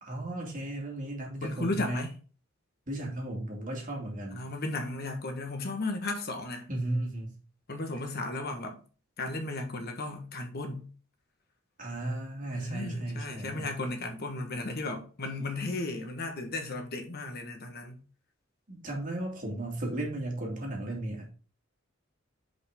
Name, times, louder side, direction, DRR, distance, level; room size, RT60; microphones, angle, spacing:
voice 1, 0.0-2.0 2.9-4.5 6.7-7.3 11.8-13.7 18.7-21.3, right 1 dB, 40° right, 2.6 m, -35 dB
voice 2, 1.4-2.1 4.3-6.7 7.7-8.8 9.2-10.9 12.5-18.0, left 2 dB, 50° left, 1.3 m, -35 dB
6.4 x 5.3 x 3.6 m
head